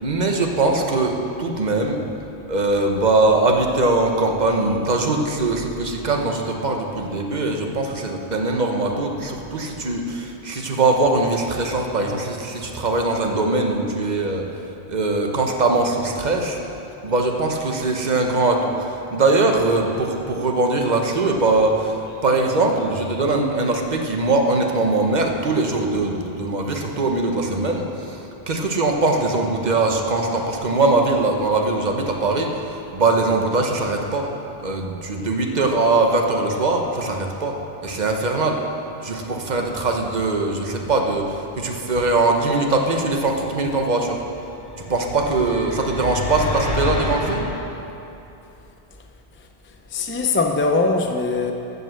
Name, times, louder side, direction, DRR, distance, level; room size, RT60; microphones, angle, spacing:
voice 1, 0.0-2.0 2.5-14.4 14.9-16.6 17.0-22.0 22.2-32.5 32.9-34.3 34.6-37.5 37.8-38.6 39.0-44.2 44.9-47.5, right 2 dB, 45° right, 2 dB, 1.1 m, -21 dB
sound 1, 44.6-47.5, left 1 dB, 65° left, 2.4 m, -28 dB
voice 2, 49.9-51.5, left 3 dB, 15° left, 3 dB, 0.4 m, -21 dB
15.0 x 5.5 x 6.5 m, 2.8 s
omnidirectional pair, 1.1 m